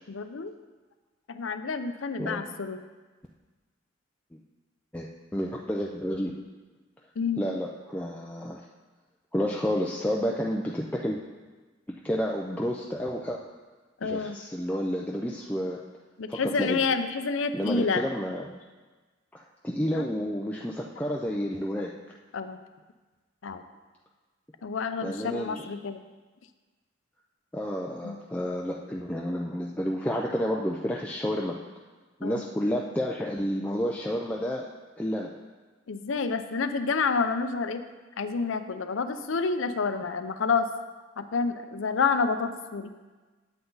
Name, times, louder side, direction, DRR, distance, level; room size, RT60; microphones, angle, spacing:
voice 1, 0.1-0.5 1.3-2.8 7.2-7.5 14.0-14.4 16.2-18.0 19.9-20.1 22.3-22.6 23.4-23.6 24.6-26.0 28.0-28.2 32.2-32.4 35.9-37.8 38.2-40.7 41.2-42.9, left 4 dB, 85° left, 9 dB, 0.6 m, -29 dB
voice 2, 4.9-6.3 7.4-8.6 9.3-11.2 12.0-13.4 14.0-15.8 16.3-16.8 17.5-18.5 19.3-21.9 25.0-25.7 27.5-31.6 32.2-34.7 35.0-35.3, equal, 5° left, -2 dB, 0.4 m, -30 dB
9.1 x 7.9 x 3.9 m, 1.3 s
head